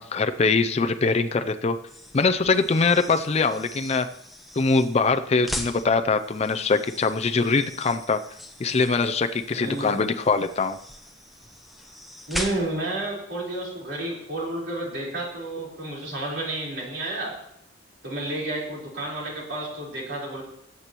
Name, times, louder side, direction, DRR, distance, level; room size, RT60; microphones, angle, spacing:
voice 1, 0.0-1.8 2.1-4.1 4.6-8.2 8.6-10.8, left 4 dB, 35° left, 9 dB, 0.4 m, -23 dB
sound 1, 1.8-13.0, left 1 dB, ahead, 0.8 m, -40 dB
voice 2, 9.5-10.1 12.3-17.4 18.0-20.4, right 1 dB, 60° right, -4 dB, 4.1 m, -31 dB
20.5 x 8.3 x 3.0 m, 0.76 s
head